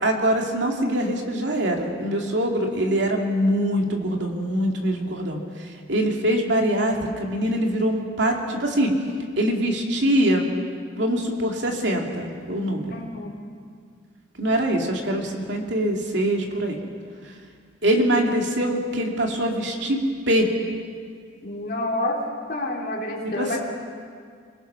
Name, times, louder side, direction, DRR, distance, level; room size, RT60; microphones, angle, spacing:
voice 1, 0.0-8.9 9.4-10.4 10.9-13.0 14.4-16.8 17.2-17.3 17.8-20.5 23.4-23.6, right 1 dB, 65° right, 1 dB, 2.7 m, -23 dB
voice 2, 12.9-13.4 21.4-22.2 22.5-23.6, left 1 dB, 50° left, -2 dB, 3.2 m, -28 dB
27.5 x 20.0 x 5.9 m, 2.1 s
head